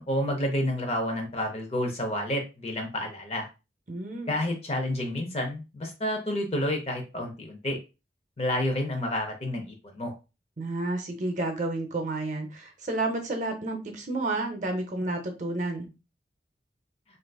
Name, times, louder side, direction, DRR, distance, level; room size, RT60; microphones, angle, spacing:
voice 1, 0.0-3.5 4.3-7.8 8.4-10.1, left 1 dB, 35° left, 4 dB, 0.7 m, -29 dB
voice 2, 3.9-4.3 10.6-15.9, right 2 dB, 45° right, 4 dB, 0.6 m, -31 dB
3.7 x 2.5 x 2.3 m, 0.29 s
head